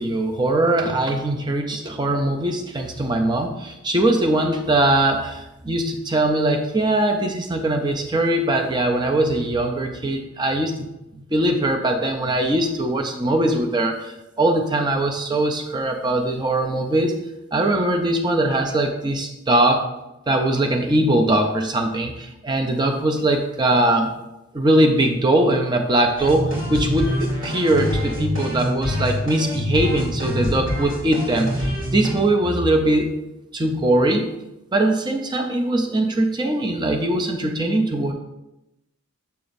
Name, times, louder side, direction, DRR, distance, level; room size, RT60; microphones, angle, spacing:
voice 1, 0.0-10.8 11.1-17.1 17.5-19.8 20.3-24.1 24.5-33.1 33.5-34.3 34.7-38.1, right 1 dB, 20° right, 3 dB, 0.5 m, -21 dB
sound 1, 26.2-32.1, equal, 75° right, 2.5 m, -26 dB
6.9 x 6.8 x 2.6 m, 0.93 s
head